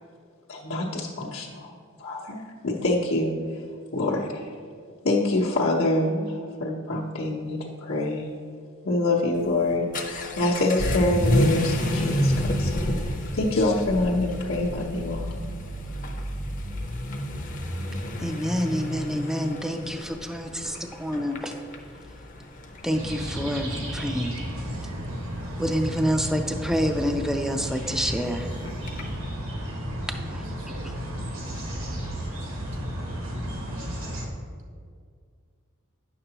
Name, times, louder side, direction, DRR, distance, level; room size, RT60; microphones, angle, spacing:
voice 1, 0.5-1.7 2.0-4.5 5.0-8.3 8.8-15.3, left 2 dB, 85° left, -7 dB, 0.9 m, -26 dB
Vehicle / Accelerating revving vroom, 9.4-29.2, left 1 dB, 40° left, 0.6 m, -30 dB
voice 2, 18.2-21.5 22.8-24.3 25.6-28.5 30.3-30.4, equal, ahead, 5 dB, 0.3 m, -27 dB
sound 1, 22.9-34.3, equal, 80° right, 1.5 m, -33 dB
voice 3, 29.6-31.4 32.9-33.0, right 2 dB, 60° right, 1 dB, 0.6 m, -48 dB
9.5 x 6.7 x 2.9 m, 2.1 s
head